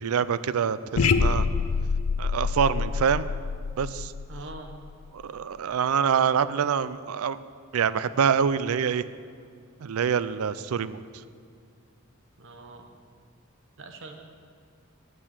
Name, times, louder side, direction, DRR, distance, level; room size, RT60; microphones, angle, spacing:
voice 1, 0.0-1.5 2.2-3.3 3.8-4.1 5.1-7.4 7.7-9.0 9.8-11.0, right 7 dB, 85° right, 15 dB, 0.4 m, -25 dB
sound 1, 1.0-5.1, left 5 dB, 80° left, 0.5 m, -26 dB
voice 2, 4.3-4.7 12.4-12.9 13.8-14.2, right 2 dB, 60° right, 5 dB, 1.1 m, -43 dB
8.8 x 6.9 x 8.2 m, 2.3 s
head